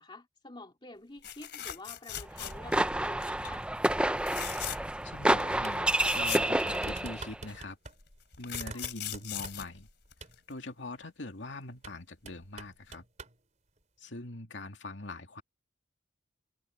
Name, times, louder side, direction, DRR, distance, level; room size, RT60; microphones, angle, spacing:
voice 1, 0.0-3.6 8.7-8.9, left 2 dB, 25° left, 2.5 m, -49 dB
sound 1, 1.2-2.9 3.2-3.5 4.2-5.0 5.4-5.5 5.7-7.2 8.0-10.5 12.4-12.6 12.9-13.0, left 11 dB, 65° left, 3.3 m, -40 dB
sound 2, 2.3-7.4, right 1 dB, 5° right, 0.6 m, -29 dB
voice 2, 5.0-7.8 8.4-9.9 10.5-13.1 14.0-15.4, left 2 dB, 80° left, 2.4 m, -42 dB
sound 3, 5.6-6.0 6.2-6.3 6.6-7.9 8.5-9.8 10.2-10.4 11.8-12.0 12.3-13.4, right 3 dB, 40° right, 3.8 m, -45 dB
head